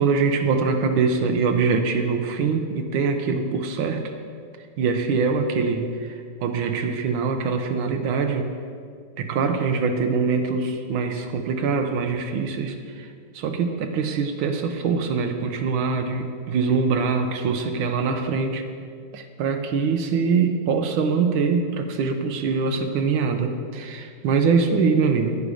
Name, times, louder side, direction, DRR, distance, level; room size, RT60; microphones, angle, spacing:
voice 1, 0.0-4.0 4.8-8.5 9.2-13.1 13.3-18.6 19.1-25.4, right 5 dB, 80° right, 5 dB, 1.5 m, -23 dB
10.0 x 9.6 x 4.8 m, 2.2 s
omnidirectional pair, 2.2 m